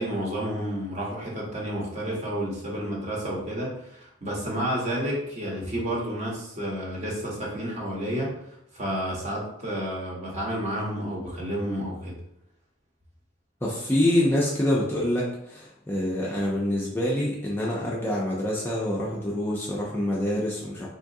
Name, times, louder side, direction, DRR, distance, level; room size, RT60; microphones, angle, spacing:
voice 1, 0.0-8.4 8.7-12.1, equal, 35° right, -4 dB, 0.9 m, -30 dB
voice 2, 13.6-20.9, left 1 dB, 10° left, -5 dB, 0.4 m, -26 dB
3.8 x 2.4 x 2.6 m, 0.76 s
head